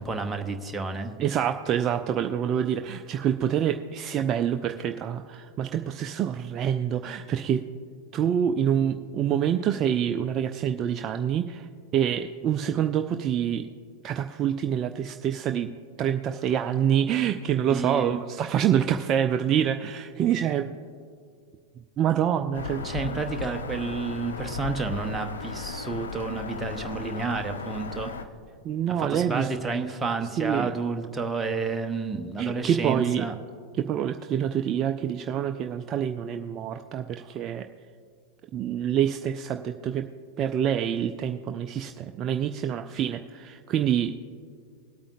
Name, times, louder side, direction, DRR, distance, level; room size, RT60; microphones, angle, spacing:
voice 1, 0.0-1.1 17.7-18.2 22.8-28.1 29.0-33.3, right 4 dB, 10° right, 4 dB, 0.8 m, -30 dB
voice 2, 1.2-7.6 8.1-13.7 14.0-15.7 16.0-20.7 22.0-22.9 28.6-29.5 30.4-30.8 32.4-33.3 33.8-37.7 38.5-40.1 40.4-44.1, right 9 dB, 30° right, 7 dB, 0.4 m, -26 dB
Bird vocalization bird call bird song, 22.5-28.2, left 5 dB, 70° left, 0.6 m, -35 dB
21.0 x 8.7 x 2.5 m, 2.2 s
figure-of-eight pair, 90°, 0 cm